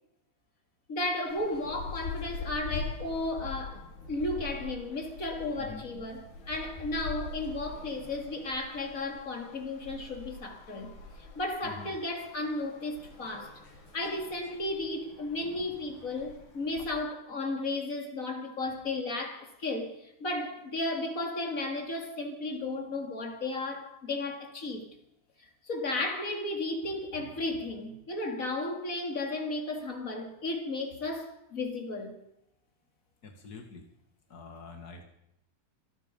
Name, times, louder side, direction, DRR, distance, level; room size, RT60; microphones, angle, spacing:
voice 1, 0.9-10.9 11.3-13.6 13.9-24.8 25.6-32.2, left 2 dB, 25° left, 2.6 m, -34 dB
sound 1, 1.3-16.9, left 4 dB, 80° left, 5.5 m, -43 dB
voice 2, 33.2-33.9 34.3-35.0, left 4 dB, 60° left, 0.9 m, -45 dB
26.0 x 18.5 x 5.4 m
omnidirectional pair, 4.9 m